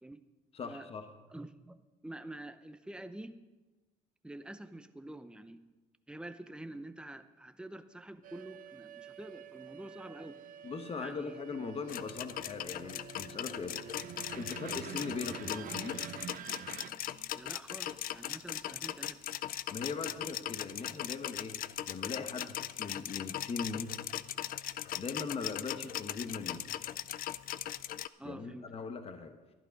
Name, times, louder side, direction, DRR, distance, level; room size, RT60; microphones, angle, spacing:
voice 1, 0.5-1.1 10.6-13.8 14.4-16.1 19.7-21.6 21.9-24.0 25.0-26.6 28.2-29.4, left 5 dB, 35° left, 7 dB, 1.1 m, -40 dB
voice 2, 1.3-3.4 4.2-5.6 6.1-10.4 11.0-11.4 17.3-19.2 28.2-28.7, right 1 dB, 5° right, 10 dB, 0.7 m, -47 dB
sound 1, 8.2-16.9, right 10 dB, 55° right, 0.6 m, -47 dB
sound 2, 11.9-28.1, left 12 dB, 55° left, 0.4 m, -39 dB
sound 3, 13.4-14.1 14.5-15.0 15.7-17.3 18.5-18.6, right 11 dB, 70° right, 1.1 m, -60 dB
12.0 x 11.0 x 5.2 m, 1.2 s
cardioid pair, 110°, 17 cm